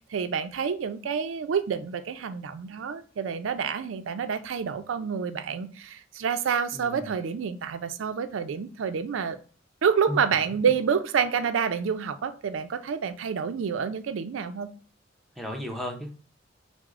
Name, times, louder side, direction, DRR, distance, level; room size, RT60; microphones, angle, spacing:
voice 1, 0.1-9.4 9.8-14.7, right 6 dB, 90° right, 10 dB, 0.4 m, -28 dB
voice 2, 6.7-7.1 10.1-10.2 15.4-16.2, left 1 dB, ahead, 2 dB, 0.6 m, -34 dB
6.0 x 2.0 x 2.4 m, 0.38 s
head